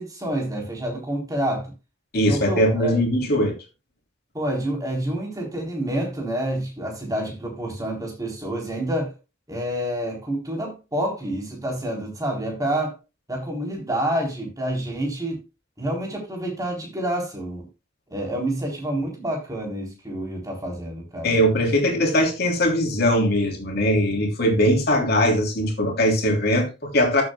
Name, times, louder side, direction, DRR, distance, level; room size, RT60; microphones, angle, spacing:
voice 1, 0.0-1.7 2.3-2.9 4.3-9.1 9.5-12.9 13.3-15.4 15.8-17.7 18.1-21.4, right 1 dB, 20° right, 3.8 m, -28 dB
voice 2, 2.1-3.5 21.2-27.2, equal, 50° left, 3.2 m, -20 dB
13.5 x 7.8 x 2.3 m
head